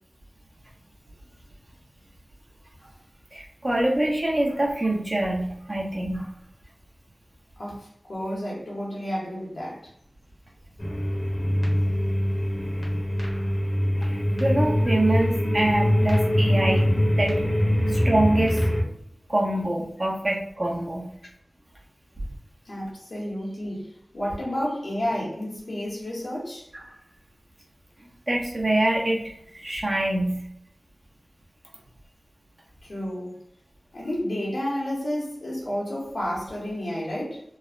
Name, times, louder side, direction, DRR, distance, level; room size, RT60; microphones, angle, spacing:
voice 1, 3.3-6.3 14.0-17.4 17.9-18.6 19.3-21.1 28.0-30.4, right 1 dB, 40° right, 0.7 m, -25 dB
voice 2, 7.6-9.9 22.6-26.7 32.8-33.4 33.9-37.4, equal, 85° left, 1.1 m, -31 dB
sound 1, 10.8-18.8, equal, 50° left, 0.9 m, -23 dB
3.1 x 2.0 x 2.4 m
wide cardioid pair, 65°, 0 cm